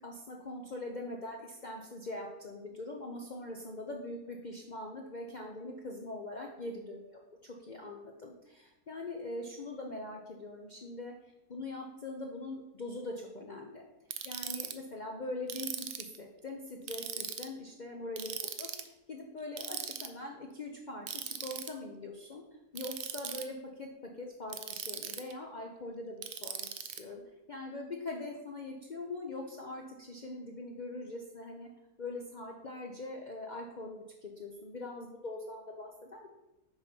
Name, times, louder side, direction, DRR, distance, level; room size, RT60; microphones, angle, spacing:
voice 1, 0.0-11.1 11.5-13.8 14.2-22.4 22.7-27.2 27.5-31.7 32.0-36.3, left 2 dB, 65° left, 0 dB, 0.4 m, -42 dB
Ratchet pawl, 14.1-14.7 15.5-16.2 16.9-17.5 18.2-18.9 19.6-20.1 21.1-21.7 22.7-23.4 24.5-25.3 26.2-27.0, right 9 dB, 75° right, 0.6 m, -39 dB
6.1 x 4.1 x 5.3 m, 0.95 s
omnidirectional pair, 1.7 m